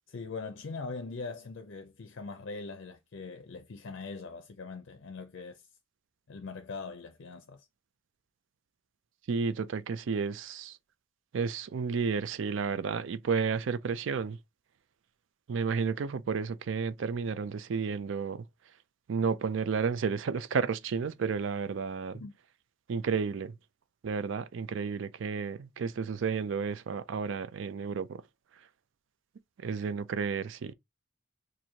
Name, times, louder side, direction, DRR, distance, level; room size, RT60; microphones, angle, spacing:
voice 1, 0.1-5.7 6.3-7.7 22.1-22.3, left 4 dB, 60° left, 0.5 m, -41 dB
voice 2, 9.3-10.8 11.3-14.4 15.5-18.4 19.1-22.2 22.9-23.6 24.0-28.2 29.6-30.7, right 5 dB, 65° right, 0.4 m, -32 dB
4.4 x 2.6 x 2.7 m
head